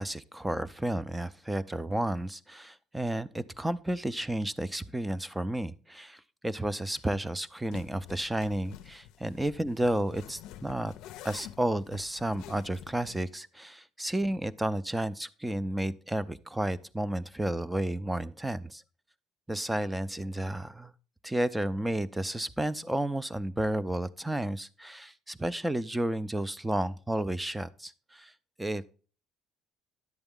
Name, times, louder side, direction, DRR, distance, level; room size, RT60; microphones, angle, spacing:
voice 1, 0.0-10.9 11.2-18.8 19.5-20.9 21.2-28.3 28.6-28.9, right 1 dB, 5° right, 18 dB, 0.4 m, -32 dB
sound 1, 6.9-7.1 7.7-13.3, left 13 dB, 70° left, 0.4 m, -48 dB
10.5 x 7.9 x 3.6 m, 0.39 s
cardioid pair, 150°, 0 cm